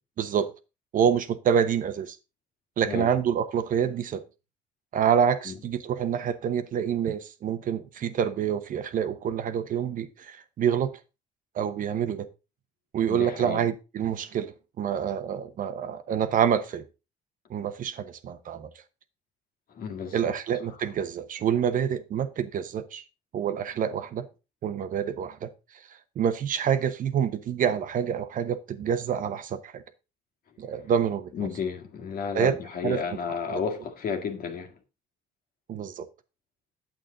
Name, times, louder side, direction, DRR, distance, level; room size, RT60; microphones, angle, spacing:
voice 1, 0.2-0.5 0.9-2.2 2.8-4.2 4.9-11.0 11.5-12.3 12.9-16.8 17.5-18.7 20.1-23.0 23.3-24.3 24.6-25.5 26.2-29.8 30.6-31.3 32.3-32.5 32.8-33.0 33.5-33.6 35.7-36.1, right 8 dB, 50° right, 1.0 m, -27 dB
voice 2, 13.1-13.7 19.7-20.3 20.7-20.8 31.3-34.8, left 6 dB, 60° left, 1.9 m, -32 dB
8.9 x 8.2 x 3.8 m
cardioid pair, 110°, 17 cm